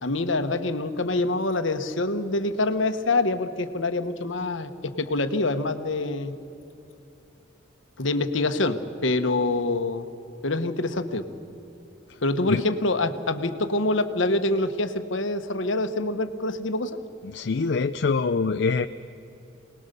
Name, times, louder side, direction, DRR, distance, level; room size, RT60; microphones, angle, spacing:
voice 1, 0.0-6.3 8.0-10.1 10.4-11.3 12.2-17.0, left 2 dB, 75° left, 9 dB, 1.2 m, -26 dB
voice 2, 17.2-18.9, left 4 dB, 60° left, 9 dB, 0.5 m, -24 dB
26.5 x 19.5 x 6.8 m, 2.8 s
head